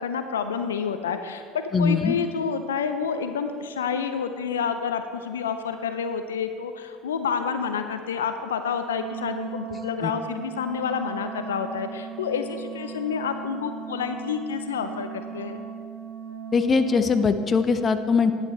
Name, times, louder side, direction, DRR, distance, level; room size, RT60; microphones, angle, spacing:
voice 1, 0.0-1.4 1.8-15.6, left 6 dB, 85° left, 8 dB, 0.5 m, -29 dB
voice 2, 1.7-2.1 10.0-10.1 16.5-18.3, left 5 dB, 30° left, 10 dB, 0.7 m, -21 dB
Wind instrument woodwind instrument, 8.9-17.3, right 8 dB, 75° right, 1.4 m, -37 dB
11.0 x 8.3 x 4.2 m, 2.2 s
hypercardioid pair, 70°, 0 cm